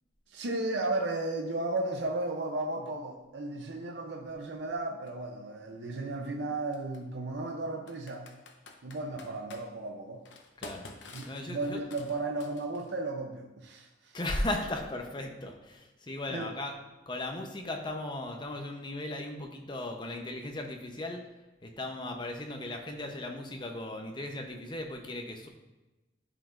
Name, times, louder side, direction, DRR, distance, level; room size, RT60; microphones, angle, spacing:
voice 1, 0.3-8.3 8.8-10.2 11.1-14.2 16.3-16.5, right 2 dB, 75° right, 2 dB, 0.6 m, -34 dB
Computer keyboard, 5.1-5.2 6.7-7.0 7.9-9.6 10.2-12.9, left 3 dB, 85° left, 0.8 m, -48 dB
voice 2, 11.3-11.8 14.1-16.7 17.1-21.2 21.6-25.5, left 1 dB, 25° left, 3 dB, 0.7 m, -37 dB
11.0 x 5.0 x 2.5 m, 1.1 s
head